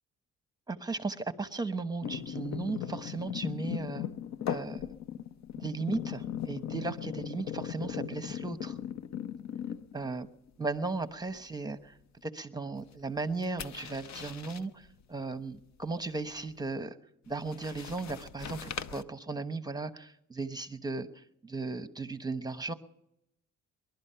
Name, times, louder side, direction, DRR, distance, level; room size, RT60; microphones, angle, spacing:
voice 1, 0.7-4.1 4.5-4.8 5.6-8.8 9.9-10.3 10.6-11.9 12.2-17.0 17.3-22.7, right 3 dB, 15° right, 10 dB, 1.0 m, -36 dB
sound 1, 2.0-10.2 10.5-10.9 13.2-14.6 17.3-19.0, left 9 dB, 65° left, 0.8 m, -38 dB
20.5 x 12.0 x 5.7 m, 0.82 s
cardioid pair, 90°, 30 cm